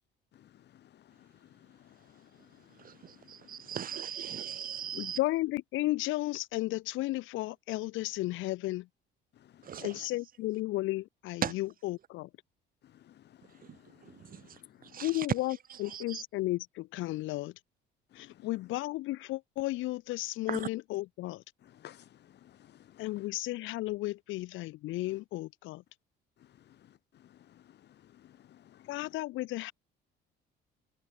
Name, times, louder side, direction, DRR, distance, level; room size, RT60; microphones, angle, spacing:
voice 1, 2.8-5.2 9.6-10.1 11.4-11.5 13.6-13.8 14.0-14.4 14.9-15.3 15.7-16.2 20.5-20.7, right 9 dB, 45° right, 3.9 m, -38 dB
voice 2, 4.9-8.9 9.8-12.3 15.0-17.5 18.2-21.4 23.0-25.8 28.9-29.7, left 18 dB, 80° left, 1.9 m, -34 dB
voice 3, 21.6-22.0 22.4-23.1 27.5-27.6 28.2-28.9, left 12 dB, 60° left, 4.5 m, -55 dB
cardioid pair, 120°, 20 cm